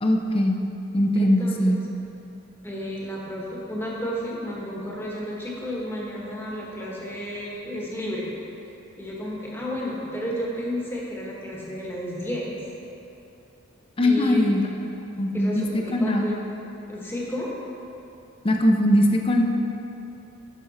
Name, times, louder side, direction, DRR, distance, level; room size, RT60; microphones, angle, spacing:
voice 1, 0.0-0.6 0.9-1.8 14.0-14.7 15.2-15.7 15.9-16.2 18.4-19.4, left 1 dB, 25° left, 2 dB, 0.6 m, -20 dB
voice 2, 1.2-1.7 2.6-8.3 9.0-12.6 14.0-14.5 15.3-16.4 16.9-17.5, equal, 10° left, -4 dB, 1.3 m, -32 dB
10.5 x 6.2 x 4.2 m, 2.9 s
head